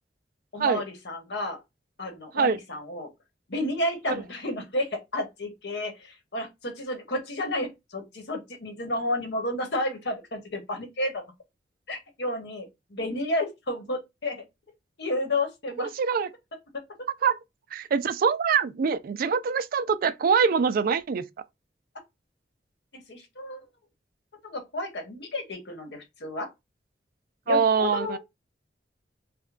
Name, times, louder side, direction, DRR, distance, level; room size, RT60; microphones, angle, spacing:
voice 1, 0.5-1.6 2.0-3.1 3.5-11.2 11.9-14.4 15.0-15.9 22.9-23.6 24.4-26.5 27.5-28.2, left 1 dB, 70° left, 1.2 m, -31 dB
voice 2, 15.8-16.3 17.2-17.4 17.7-21.3 27.5-28.2, right 6 dB, 55° right, 0.3 m, -24 dB
5.0 x 2.2 x 2.4 m
head